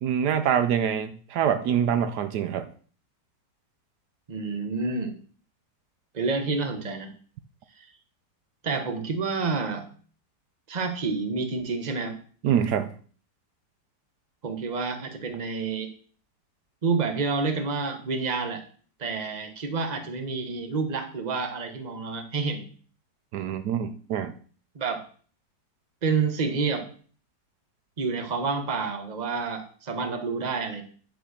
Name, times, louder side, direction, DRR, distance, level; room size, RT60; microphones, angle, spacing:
voice 1, 0.0-2.7 12.4-12.9 23.3-24.3, right 8 dB, 75° right, 10 dB, 1.2 m, -25 dB
voice 2, 4.3-5.1 6.1-7.1 7.8-7.9 8.6-9.9 10.7-12.1 14.4-15.9 16.8-18.6 19.0-22.6 24.7-25.0 26.0-26.9 28.0-30.8, right 4 dB, 30° right, 7 dB, 1.1 m, -28 dB
10.0 x 4.3 x 6.3 m, 0.43 s
omnidirectional pair, 1.8 m